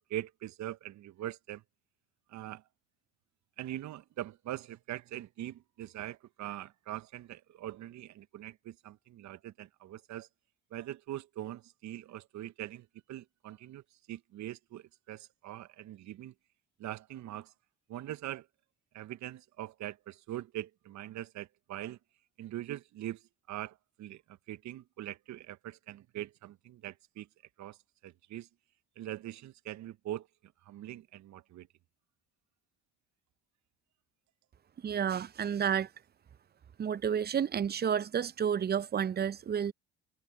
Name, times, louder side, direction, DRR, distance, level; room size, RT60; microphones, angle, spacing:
voice 1, 0.1-1.6 2.3-2.6 3.6-10.3 10.7-13.8 14.1-16.3 16.8-17.5 17.9-18.5 18.9-22.0 22.4-23.2 23.5-24.2 24.5-27.3 27.6-27.8 28.0-28.5 29.0-30.3 30.6-31.7, right 13 dB, 55° right, 0.9 m, -42 dB
voice 2, 34.8-35.9 36.8-39.7, right 8 dB, 30° right, 0.6 m, -30 dB
hypercardioid pair, 55°, 34 cm